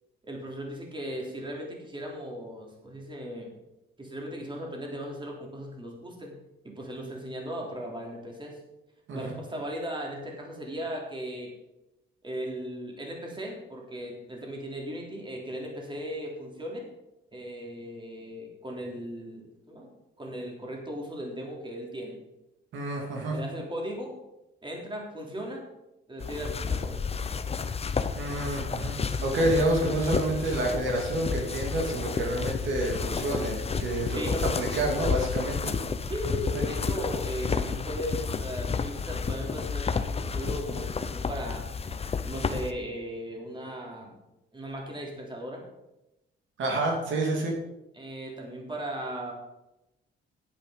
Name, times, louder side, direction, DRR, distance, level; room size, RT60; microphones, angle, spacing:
voice 1, 0.2-3.5 4.0-6.4 6.6-8.6 9.1-11.5 12.2-16.8 17.3-19.9 20.2-22.2 23.3-24.1 24.6-25.6 26.1-27.0 34.1-34.4 36.1-41.6 42.2-44.1 44.5-45.6 47.9-49.3, equal, 25° right, -1 dB, 3.4 m, -37 dB
voice 2, 22.7-23.3 28.2-29.0 29.2-34.2 34.6-35.7 36.5-36.6 46.6-47.5, right 1 dB, 75° right, 0 dB, 2.6 m, -28 dB
sound 1, 26.2-42.7, left 5 dB, 30° left, 0.8 m, -31 dB
10.0 x 9.1 x 5.2 m, 0.94 s
cardioid pair, 90°, 20 cm